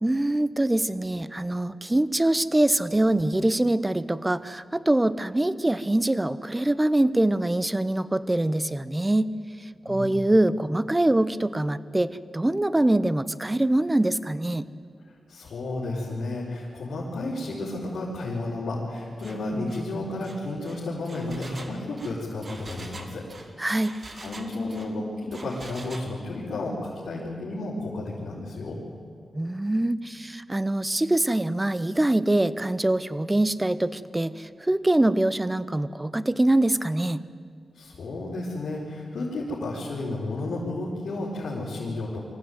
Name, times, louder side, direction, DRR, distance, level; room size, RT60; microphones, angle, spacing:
voice 1, 0.0-9.3 9.6-14.7 23.6-23.9 29.3-37.2, right 1 dB, 15° right, 15 dB, 0.8 m, -24 dB
voice 2, 15.3-23.2 23.6-23.9 24.1-26.8 27.0-28.8 37.7-42.2, left 2 dB, 80° left, -6 dB, 4.6 m, -32 dB
Engine, 19.2-19.4 19.7-19.9 20.2-24.9 25.3-26.1, right 2 dB, 40° right, 2.2 m, -44 dB
25.0 x 15.0 x 9.5 m, 2.2 s
wide cardioid pair, 95°, 0 cm